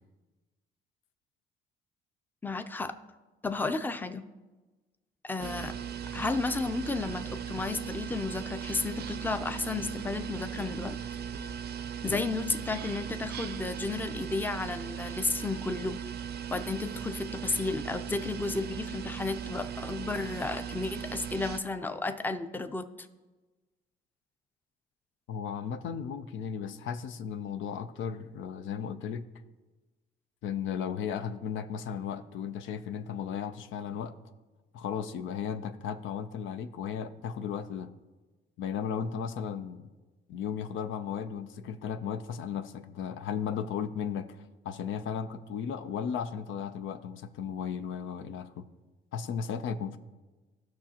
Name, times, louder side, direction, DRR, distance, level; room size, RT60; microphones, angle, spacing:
voice 1, 2.4-2.9 3.4-4.3 5.2-5.8 6.1-11.0 12.0-16.0 16.5-22.8, left 3 dB, 10° left, 9 dB, 0.5 m, -33 dB
sound 1, 5.4-21.6, right 8 dB, 55° right, 0.5 m, -38 dB
voice 2, 25.3-29.3 30.4-34.2 34.7-37.9 38.6-39.9 40.3-48.7 49.1-50.0, left 7 dB, 80° left, 10 dB, 0.6 m, -35 dB
16.0 x 6.1 x 2.9 m, 1.2 s
cardioid pair, 90°, 20 cm